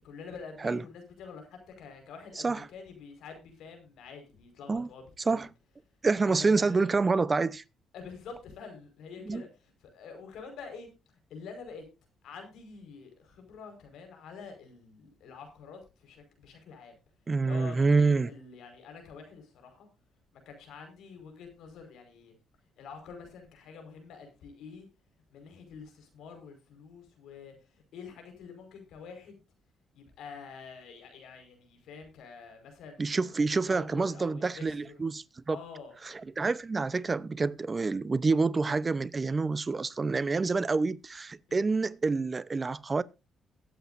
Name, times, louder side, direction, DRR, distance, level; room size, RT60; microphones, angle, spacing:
voice 1, 0.0-5.4 6.2-6.9 7.9-10.9 11.3-11.8 12.2-16.9 17.4-17.8 18.1-19.9 20.3-22.3 22.8-24.9 25.3-29.4 29.9-33.2 33.7-34.9 35.5-35.9 41.5-41.6, left 5 dB, 80° left, 4.8 m, -47 dB
voice 2, 2.4-2.7 4.7-4.9 5.2-5.5 6.0-7.6 9.2-9.4 17.3-18.3 33.0-35.6 36.1-43.0, right 4 dB, 30° right, 0.7 m, -27 dB
22.0 x 8.3 x 2.6 m
cardioid pair, 90°, 0 cm